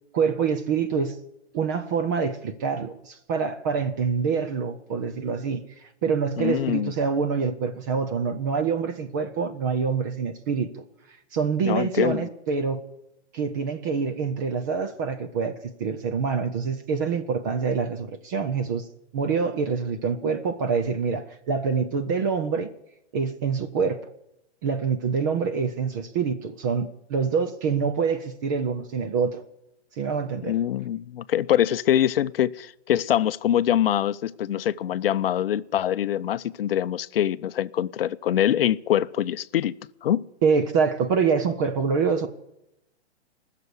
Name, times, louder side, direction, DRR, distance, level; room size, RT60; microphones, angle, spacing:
voice 1, 0.1-1.2 1.5-10.7 11.3-12.8 13.3-18.8 19.1-22.7 23.1-24.0 24.6-29.4 30.0-30.5 40.4-42.3, right 5 dB, 15° right, 0.5 m, -26 dB
voice 2, 6.4-6.9 11.6-12.3 30.5-39.7 40.0-40.2, left 11 dB, 55° left, 0.6 m, -24 dB
20.0 x 6.8 x 9.6 m
hypercardioid pair, 160°, 34 cm